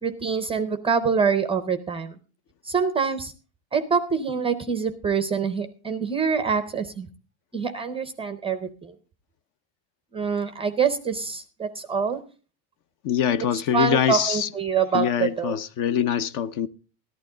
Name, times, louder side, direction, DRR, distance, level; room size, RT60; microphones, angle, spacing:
voice 1, 0.0-2.1 2.6-3.3 3.7-7.1 7.5-8.9 10.1-12.2 13.7-15.5, right 6 dB, 15° right, 0.5 m, -25 dB
voice 2, 13.0-14.5 14.9-16.7, left 9 dB, 45° left, 0.5 m, -24 dB
14.0 x 11.5 x 3.8 m
cardioid pair, 170°, 47 cm